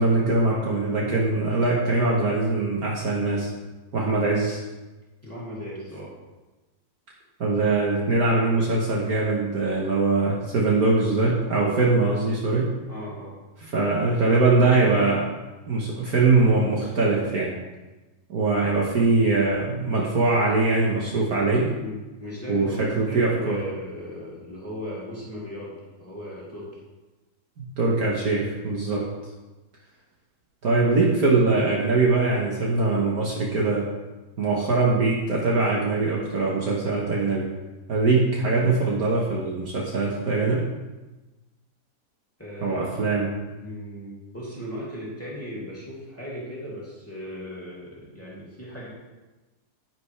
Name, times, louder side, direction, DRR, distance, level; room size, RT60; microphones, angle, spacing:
voice 1, 0.0-3.5 3.9-4.6 7.4-12.7 13.6-15.2 15.7-17.5 18.3-21.7 22.5-23.6 27.6-29.0 30.6-33.9 34.4-37.5 37.9-40.7 42.6-43.3, right 3 dB, 65° right, -3 dB, 1.7 m, -22 dB
voice 2, 5.2-6.1 12.9-13.4 21.7-26.7 28.9-29.1 42.4-43.1 43.6-48.9, equal, 10° left, -6 dB, 2.5 m, -37 dB
10.5 x 9.5 x 3.3 m, 1.1 s
omnidirectional pair, 1.8 m